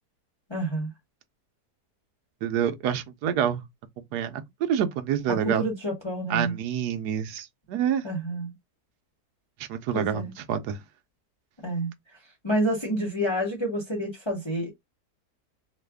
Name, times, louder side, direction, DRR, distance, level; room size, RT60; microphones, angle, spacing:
voice 1, 0.5-0.9 5.3-6.6 8.0-8.5 9.9-10.3 11.6-11.9 12.4-14.7, right 1 dB, 20° left, 0.9 m, -28 dB
voice 2, 2.4-3.6 4.1-5.6 6.3-8.0 9.7-10.2 10.5-10.8, right 9 dB, 85° right, 1.2 m, -27 dB
3.2 x 2.1 x 3.4 m
omnidirectional pair, 1.7 m